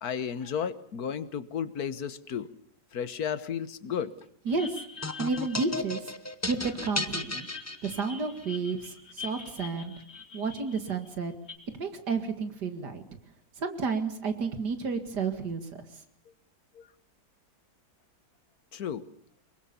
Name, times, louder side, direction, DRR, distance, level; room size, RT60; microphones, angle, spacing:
voice 1, 0.0-2.5 2.9-4.1 16.7-16.9 18.7-19.1, left 7 dB, 65° left, 14 dB, 1.6 m, -33 dB
sound 1, 4.5-6.3 6.7-11.6, left 4 dB, 35° left, 4.8 m, -45 dB
voice 2, 4.5-4.8 5.2-6.1 6.5-7.5 7.8-9.9 10.3-11.3 11.8-13.0 13.6-15.6, right 4 dB, 75° right, 8 dB, 2.6 m, -31 dB
sound 2, 5.0-8.4, left 2 dB, 15° left, 0.5 m, -35 dB
25.0 x 22.5 x 7.0 m, 0.65 s
omnidirectional pair, 1.8 m